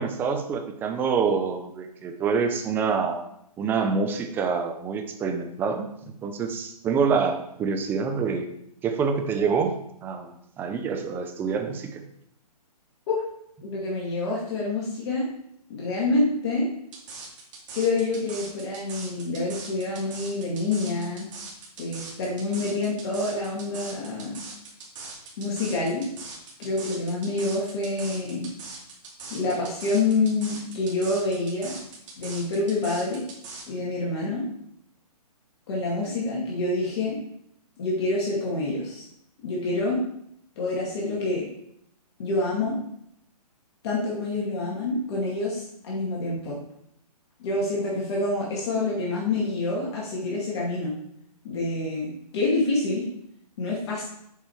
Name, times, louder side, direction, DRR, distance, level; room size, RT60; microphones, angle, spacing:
voice 1, 0.0-3.2 3.6-8.5 8.8-9.8 10.0-12.0, right 5 dB, 10° right, 6 dB, 0.6 m, -26 dB
voice 2, 13.6-15.3 15.7-16.7 17.7-21.3 21.8-24.4 25.4-26.1 26.6-28.5 29.3-31.8 32.2-33.2 33.7-34.5 35.7-37.2 37.8-39.1 39.4-40.0 40.6-41.5 42.2-42.8 43.8-46.6 47.4-51.0 51.4-53.1 53.6-54.1, left 2 dB, 40° left, -4 dB, 2.2 m, -27 dB
sound 1, 16.9-33.6, right 3 dB, 50° right, 2.5 m, -41 dB
7.5 x 5.1 x 4.7 m, 0.73 s
hypercardioid pair, 150°, 20 cm